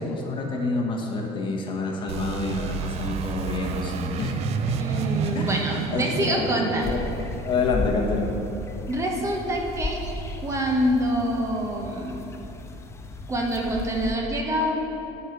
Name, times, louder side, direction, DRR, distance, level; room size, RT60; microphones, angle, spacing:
voice 1, 0.0-5.0 5.3-7.0 7.4-8.4, left 3 dB, 35° left, 0 dB, 1.2 m, -28 dB
sound 1, 2.1-8.7, right 7 dB, 50° right, 0.4 m, -31 dB
voice 2, 4.7-7.0 8.9-10.0 10.4-12.3 13.3-14.8, equal, 20° right, 0 dB, 0.9 m, -26 dB
sound 2, 6.8-14.1, left 2 dB, 20° left, 0.5 m, -34 dB
8.2 x 5.4 x 6.1 m, 3.0 s
cardioid pair, 135°, 14 cm